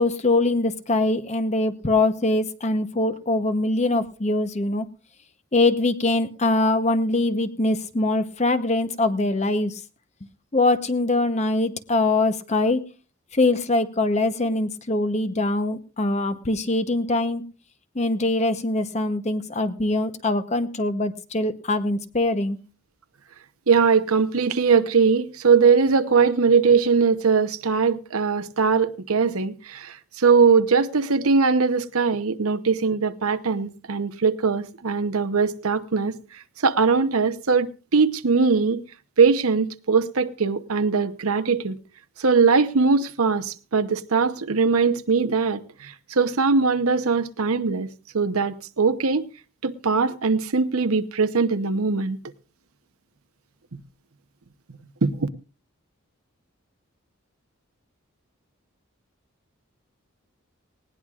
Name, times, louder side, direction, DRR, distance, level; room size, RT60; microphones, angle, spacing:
voice 1, 0.0-4.9 5.5-9.8 10.5-12.8 13.3-17.4 17.9-22.6, left 2 dB, 30° left, 0.9 m, -23 dB
voice 2, 23.7-38.8 39.2-41.8 42.2-47.9 48.1-49.2 49.6-52.2 55.0-55.3, right 5 dB, 85° right, 0.9 m, -21 dB
19.5 x 18.0 x 2.4 m
head